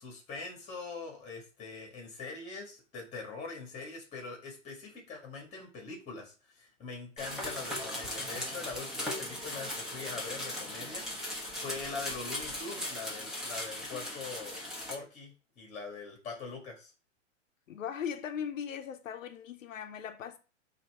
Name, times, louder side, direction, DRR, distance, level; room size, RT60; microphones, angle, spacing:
voice 1, 0.0-11.0 11.5-14.6 14.9-16.9, left 4 dB, 20° left, 1.6 m, -43 dB
sound 1, 7.2-15.0, left 1 dB, ahead, 0.8 m, -38 dB
voice 2, 17.7-20.4, left 8 dB, 90° left, 0.7 m, -38 dB
5.4 x 2.8 x 3.3 m
hypercardioid pair, 140°, 38 cm